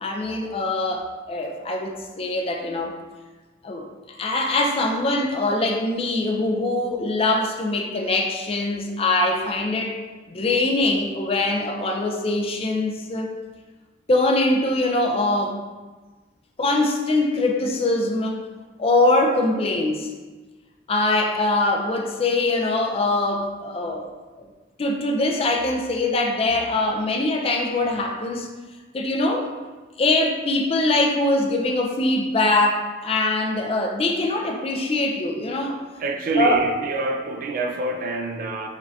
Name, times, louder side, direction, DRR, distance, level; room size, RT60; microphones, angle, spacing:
voice 1, 0.0-2.9 3.6-10.0 10.3-13.3 14.1-15.6 16.6-18.4 18.8-20.1 20.9-24.1 24.8-28.5 28.9-29.5 30.0-35.8 36.3-36.7, left 2 dB, 30° left, 2 dB, 0.4 m, -23 dB
voice 2, 36.0-38.7, right 3 dB, 45° right, 3 dB, 0.3 m, -26 dB
5.2 x 2.4 x 2.7 m, 1.3 s
head